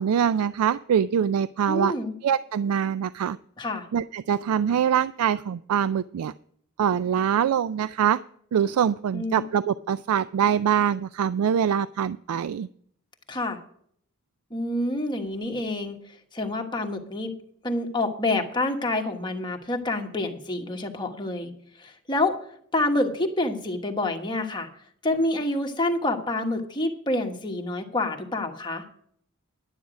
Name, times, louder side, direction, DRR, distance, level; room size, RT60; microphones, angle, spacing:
voice 1, 0.0-1.9 2.2-3.4 3.9-6.3 6.8-8.2 8.5-12.7, right 8 dB, 90° right, 15 dB, 0.3 m, -24 dB
voice 2, 1.7-2.1 3.6-3.8 9.1-9.4 13.3-13.6 14.5-16.0 16.3-17.3 17.6-21.5 21.8-22.3 22.7-24.7 25.0-28.8, left 2 dB, 20° left, 3 dB, 1.3 m, -27 dB
11.0 x 9.4 x 5.0 m, 0.64 s
head